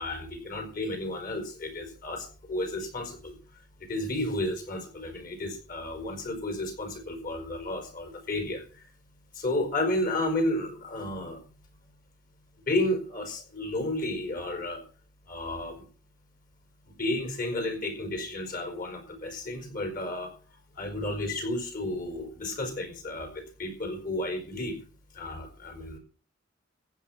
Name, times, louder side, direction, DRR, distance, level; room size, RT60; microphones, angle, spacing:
voice 1, 0.0-3.4 3.8-8.6 9.3-11.4 12.7-14.8 15.3-15.8 17.0-20.3 20.7-24.8 25.1-26.0, left 1 dB, 45° left, 6 dB, 5.0 m, -32 dB
15.0 x 9.3 x 5.9 m, 0.38 s
head